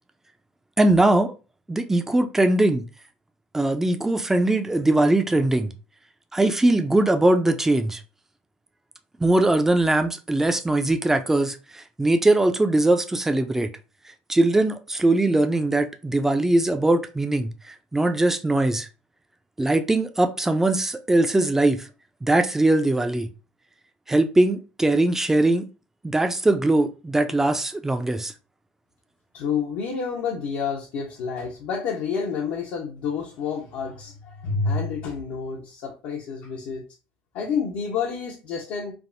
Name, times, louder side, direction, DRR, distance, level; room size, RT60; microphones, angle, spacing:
voice 1, 0.8-1.3 1.7-2.9 3.5-5.7 6.3-8.0 9.2-13.7 14.3-18.9 19.6-21.9 22.2-23.3 24.1-25.7 26.0-28.3, right 2 dB, 10° right, 0.4 m, -21 dB
voice 2, 29.3-36.8 37.3-38.9, left 5 dB, 70° left, 0.7 m, -29 dB
3.4 x 2.0 x 2.5 m
supercardioid pair, 90°, 4 cm